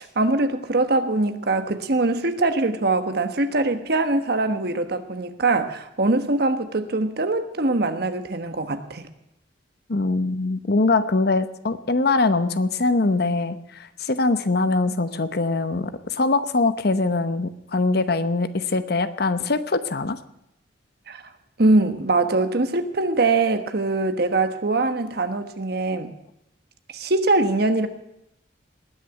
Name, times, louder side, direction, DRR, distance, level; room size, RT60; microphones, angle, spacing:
voice 1, 0.0-9.1 21.1-21.2 21.6-26.1 26.9-27.9, right 2 dB, 60° right, 8 dB, 1.3 m, -22 dB
voice 2, 9.9-20.2, left 3 dB, 60° left, 12 dB, 0.9 m, -22 dB
19.5 x 6.8 x 9.3 m, 0.85 s
head